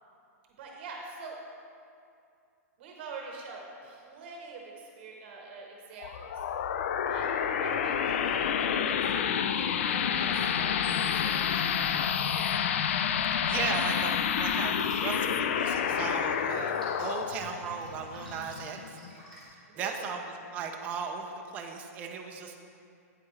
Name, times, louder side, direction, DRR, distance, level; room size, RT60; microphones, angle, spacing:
voice 1, 0.6-1.4 2.8-6.4 7.1-12.6 19.7-20.2, right 3 dB, 40° right, 0 dB, 1.0 m, -45 dB
sound 1, 6.0-19.1, left 8 dB, 50° left, 0.3 m, -29 dB
Drip, 13.5-19.5, right 1 dB, ahead, 1.9 m, -52 dB
voice 2, 13.5-19.0 19.8-20.2 20.5-22.6, right 6 dB, 15° right, 2 dB, 0.5 m, -36 dB
8.6 x 8.1 x 3.2 m, 2.5 s
hypercardioid pair, 170°, 9 cm